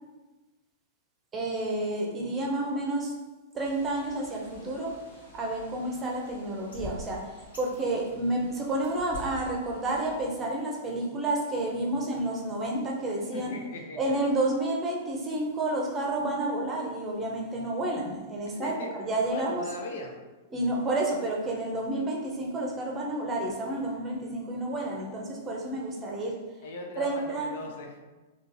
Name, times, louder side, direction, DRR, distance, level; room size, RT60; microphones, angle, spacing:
voice 1, 1.3-3.1 3.5-13.5 14.0-19.6 20.5-26.4 27.0-27.5, right 2 dB, 25° right, -1 dB, 0.7 m, -30 dB
Bird, 3.6-10.3, left 1 dB, 80° left, 1.3 m, -47 dB
voice 2, 13.3-14.0 18.4-18.9 19.3-20.1 26.6-28.0, left 2 dB, 60° left, 2 dB, 0.5 m, -39 dB
3.7 x 2.3 x 2.6 m, 1.2 s
figure-of-eight pair, 100°, 0 cm